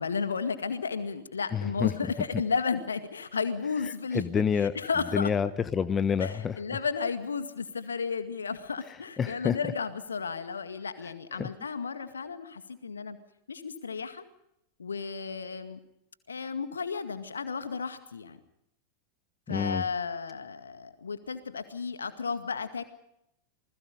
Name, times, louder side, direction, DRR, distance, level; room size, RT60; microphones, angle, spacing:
voice 1, 0.0-4.2 4.8-5.3 6.2-13.2 13.5-14.2 14.8-15.8 16.3-18.4 19.5-22.8, left 5 dB, 70° left, 10 dB, 2.0 m, -33 dB
voice 2, 1.5-1.9 3.8-4.8 5.1-6.6 8.9-9.6 11.0-11.5 19.5-19.9, left 7 dB, 20° left, 15 dB, 1.0 m, -29 dB
28.0 x 20.5 x 5.2 m, 0.81 s
figure-of-eight pair, 90°, 0 cm